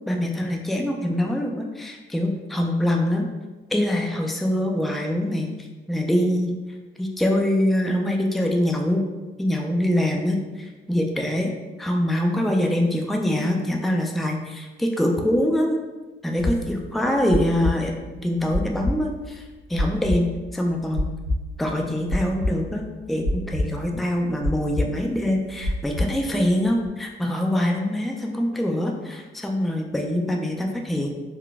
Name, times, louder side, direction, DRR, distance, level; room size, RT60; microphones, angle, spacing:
voice 1, 0.1-3.3 3.7-5.5 5.9-6.5 7.0-9.0 9.4-11.5 11.8-15.8 16.2-17.9 18.2-19.4 19.7-21.1 21.6-31.1, left 1 dB, ahead, 1 dB, 0.4 m, -24 dB
sound 1, 16.4-25.0 25.2-26.9, left 1 dB, 90° right, 0.8 m, -27 dB
3.9 x 2.2 x 3.4 m, 1.2 s
cardioid pair, 90°, 20 cm